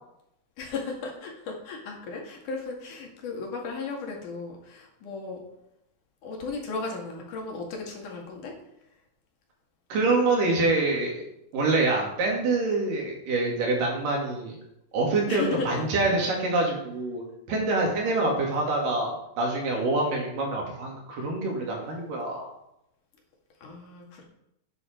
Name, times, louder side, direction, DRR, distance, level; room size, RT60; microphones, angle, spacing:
voice 1, 0.6-5.4 6.2-8.5 15.3-15.8 18.0-18.4 23.6-24.2, left 4 dB, 70° left, 0 dB, 3.7 m, -35 dB
voice 2, 9.9-11.2 11.5-14.6 14.9-22.5, right 2 dB, 85° right, -1 dB, 4.4 m, -26 dB
10.5 x 9.9 x 4.6 m, 0.81 s
omnidirectional pair, 3.7 m